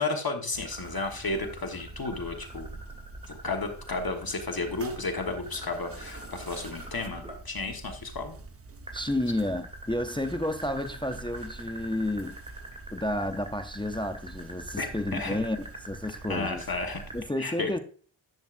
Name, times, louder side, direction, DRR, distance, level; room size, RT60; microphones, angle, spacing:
voice 1, 0.0-2.7 3.3-8.4 14.8-15.4 16.3-17.0 17.4-17.7, left 3 dB, 50° left, 1.2 m, -32 dB
sound 1, 0.5-17.2, right 2 dB, 30° right, 0.8 m, -46 dB
sound 2, 0.6-7.4 8.9-17.1, right 1 dB, 10° right, 2.7 m, -44 dB
voice 2, 8.9-12.4 12.9-16.6 17.1-17.8, left 1 dB, 10° left, 0.5 m, -31 dB
10.5 x 7.3 x 2.5 m
wide cardioid pair, 75°, 48 cm